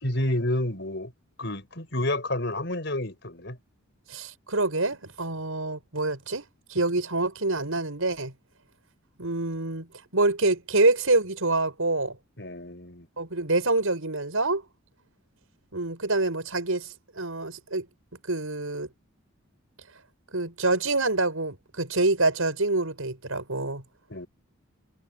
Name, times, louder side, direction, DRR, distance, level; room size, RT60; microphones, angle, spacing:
voice 1, 0.0-1.1 1.4-3.6 12.4-13.1 24.1-24.3, left 1 dB, 55° left, 6.2 m, -29 dB
voice 2, 4.1-6.4 6.7-8.3 9.2-12.2 13.2-14.6 15.7-17.9 18.3-18.9 20.3-23.8, right 2 dB, 80° right, 5.7 m, -26 dB
head